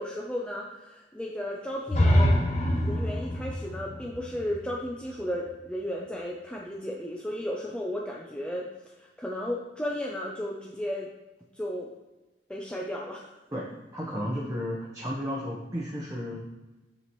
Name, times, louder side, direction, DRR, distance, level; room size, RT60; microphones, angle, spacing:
voice 1, 0.0-2.4 2.8-8.7 9.0-11.1 11.5-11.9 12.5-13.3, equal, 5° left, -2 dB, 0.5 m, -34 dB
sound 1, 1.9-5.7, equal, 40° left, 0.9 m, -26 dB
voice 2, 13.9-16.4, equal, 20° right, -4 dB, 0.8 m, -33 dB
7.0 x 6.8 x 3.1 m, 1.1 s
head